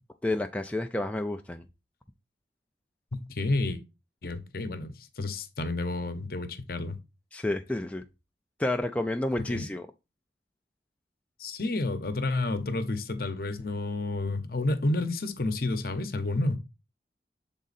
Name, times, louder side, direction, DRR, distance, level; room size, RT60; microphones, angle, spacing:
voice 1, 0.2-1.6 7.3-8.0 8.6-9.9, left 1 dB, 5° left, 0.3 m, -30 dB
voice 2, 3.1-3.8 4.2-7.0 9.5-9.7 11.4-16.6, left 2 dB, 55° left, 0.8 m, -30 dB
7.3 x 3.8 x 4.0 m
head